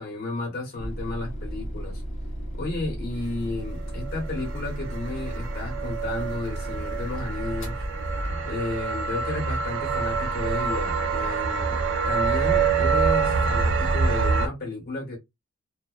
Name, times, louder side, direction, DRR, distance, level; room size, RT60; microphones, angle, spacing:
voice 1, 0.0-2.0 2.5-7.9 8.4-11.8 12.1-15.2, left 2 dB, 50° left, 1.3 m, -33 dB
sound 1, 0.8-8.8, equal, 70° left, 0.9 m, -34 dB
sound 2, 3.9-14.5, right 5 dB, 65° right, 0.4 m, -26 dB
2.5 x 2.2 x 2.4 m
head